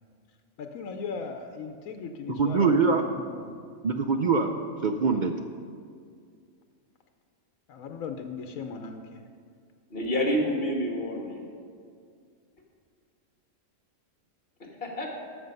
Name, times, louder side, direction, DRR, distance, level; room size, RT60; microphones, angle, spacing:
voice 1, 0.6-3.6 7.7-9.3, left 5 dB, 90° left, 5 dB, 1.1 m, -38 dB
voice 2, 2.4-3.1 3.8-5.4, right 4 dB, 65° right, 6 dB, 0.4 m, -24 dB
voice 3, 9.9-11.4 14.8-15.1, equal, 45° left, 0 dB, 1.8 m, -28 dB
13.5 x 6.3 x 5.3 m, 2.2 s
omnidirectional pair, 1.4 m